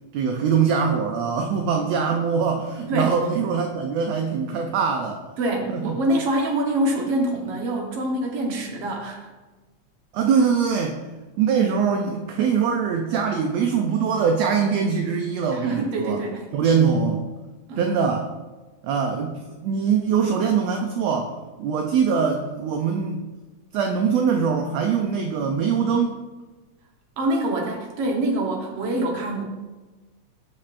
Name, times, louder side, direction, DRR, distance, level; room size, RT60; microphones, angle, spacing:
voice 1, 0.1-5.2 5.7-6.0 10.1-11.0 11.4-16.2 16.5-17.3 17.8-18.3 18.8-23.2 23.7-26.2, right 6 dB, 80° right, 3 dB, 1.6 m, -23 dB
voice 2, 5.4-9.3 15.5-16.4 17.7-18.0 27.2-29.4, right 1 dB, 60° right, 0 dB, 1.8 m, -25 dB
11.5 x 5.4 x 2.5 m, 1.2 s
omnidirectional pair, 3.3 m